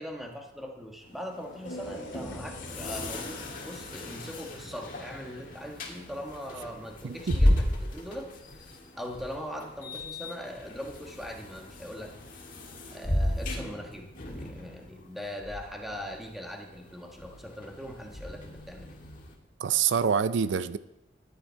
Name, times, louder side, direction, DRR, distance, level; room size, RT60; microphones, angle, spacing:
voice 1, 0.0-8.3 8.5-12.2 12.9-19.0, equal, ahead, 1.3 m, -41 dB
sound 1, 1.0-19.3, left 1 dB, 45° left, 1.7 m, -34 dB
sound 2, 1.6-10.0, left 1 dB, 90° left, 2.0 m, -48 dB
voice 2, 7.0-7.4 19.6-20.8, right 7 dB, 80° right, 0.4 m, -26 dB
12.5 x 9.6 x 4.5 m
head